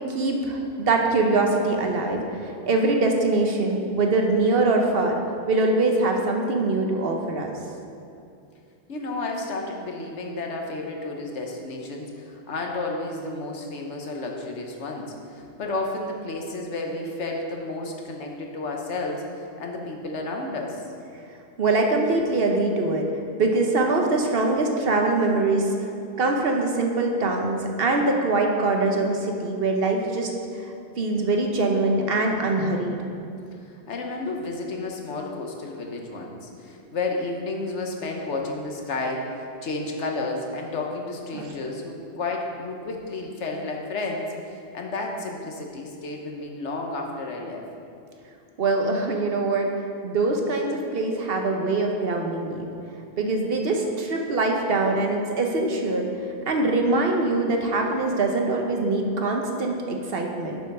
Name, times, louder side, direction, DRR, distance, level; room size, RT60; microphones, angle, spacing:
voice 1, 0.1-2.2 2.7-5.1 5.5-7.5 21.6-23.1 23.4-25.7 26.2-30.3 30.6-30.7 31.0-33.0 41.3-41.5 48.6-49.7 50.0-52.7 53.2-56.1 56.5-60.6, right 2 dB, 60° right, 2 dB, 1.0 m, -23 dB
voice 2, 8.9-19.2 19.6-20.8 33.6-47.6, left 2 dB, 75° left, 1 dB, 1.3 m, -31 dB
7.0 x 6.6 x 5.4 m, 2.5 s
omnidirectional pair, 1.2 m